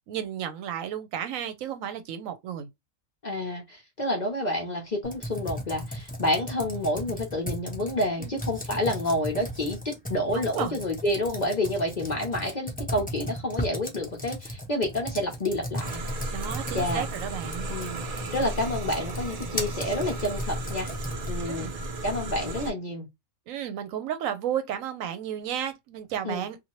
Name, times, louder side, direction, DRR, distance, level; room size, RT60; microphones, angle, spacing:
voice 1, 0.1-2.7 8.2-8.3 10.3-10.8 16.3-17.7 21.5-21.7 23.5-26.6, right 9 dB, 75° right, 1.0 m, -33 dB
voice 2, 3.2-16.0 16.7-17.1 17.7-18.0 18.3-20.9 21.3-21.7 22.0-23.1 26.2-26.4, left 1 dB, 45° left, 0.7 m, -29 dB
Computer keyboard, 5.0-21.5, equal, 5° left, 0.8 m, -36 dB
sound 1, 15.8-22.7, right 2 dB, 60° right, 0.4 m, -34 dB
2.8 x 2.5 x 2.9 m
omnidirectional pair, 1.4 m